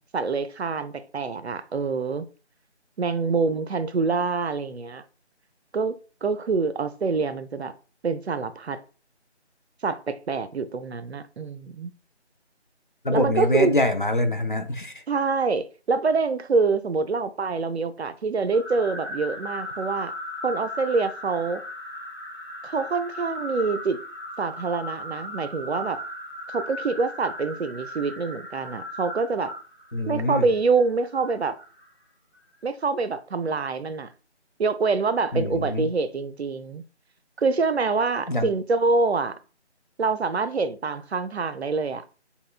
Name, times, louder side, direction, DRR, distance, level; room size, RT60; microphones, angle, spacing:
voice 1, 0.1-2.3 3.0-5.0 5.7-7.7 8.0-8.8 9.8-11.9 13.1-13.8 15.1-20.1 20.4-21.6 22.6-24.0 24.4-26.0 26.5-29.5 30.1-31.6 32.6-34.1 34.6-36.8 37.4-39.4 40.0-42.0, right 4 dB, 70° right, 0.5 m, -26 dB
voice 2, 13.0-14.9 29.9-30.5 35.3-35.9 38.3-38.5, left 1 dB, 45° left, 0.5 m, -24 dB
sound 1, 18.5-31.9, left 1 dB, 10° left, 1.1 m, -37 dB
5.4 x 2.2 x 2.3 m
figure-of-eight pair, 170°, 34 cm